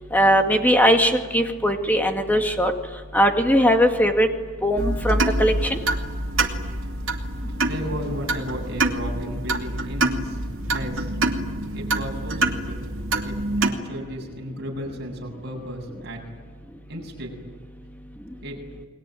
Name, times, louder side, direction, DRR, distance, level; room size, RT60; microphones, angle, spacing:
voice 1, 0.1-2.7 3.1-4.3 4.6-5.8, equal, 10° left, 4 dB, 2.2 m, -19 dB
sound 1, 4.8-13.7, right 2 dB, 70° right, 2.5 m, -26 dB
voice 2, 7.3-10.4 10.7-11.1 11.7-16.2 16.9-17.3 18.4-18.6, equal, 50° right, 1 dB, 7.7 m, -34 dB
29.5 x 21.5 x 9.3 m, 1.5 s
head